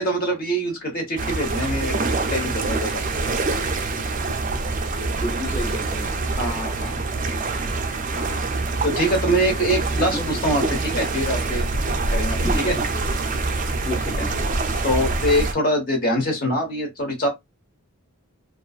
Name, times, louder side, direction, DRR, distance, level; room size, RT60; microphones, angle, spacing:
voice 1, 0.0-3.1 6.4-7.0 8.1-8.5 8.8-11.7 12.1-12.4 12.6-12.8 14.8-17.3, equal, 40° left, 1.0 m, -24 dB
sound 1, 1.2-15.5, right 3 dB, 35° right, 0.4 m, -25 dB
voice 2, 5.2-6.2 9.9-10.5 12.4-12.9 13.8-14.5, equal, 10° left, 0.6 m, -31 dB
2.5 x 2.3 x 2.3 m
head